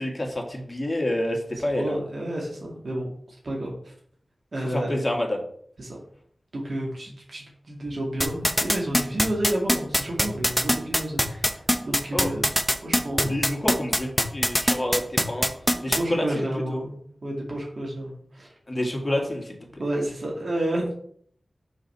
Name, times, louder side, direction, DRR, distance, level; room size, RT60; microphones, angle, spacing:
voice 1, 0.0-2.0 4.7-5.4 12.1-12.3 13.2-15.5 15.8-16.8 18.7-19.8, left 1 dB, 25° left, 1 dB, 1.8 m, -28 dB
voice 2, 1.7-3.9 4.5-5.0 5.8-6.0 6.5-12.5 12.8-13.3 15.7-18.6 19.8-20.9, right 1 dB, 70° right, -2 dB, 1.7 m, -30 dB
sound 1, 8.2-16.0, equal, 5° left, 0.7 m, -21 dB
6.4 x 4.0 x 5.4 m, 0.62 s
wide cardioid pair, 65°, 0 cm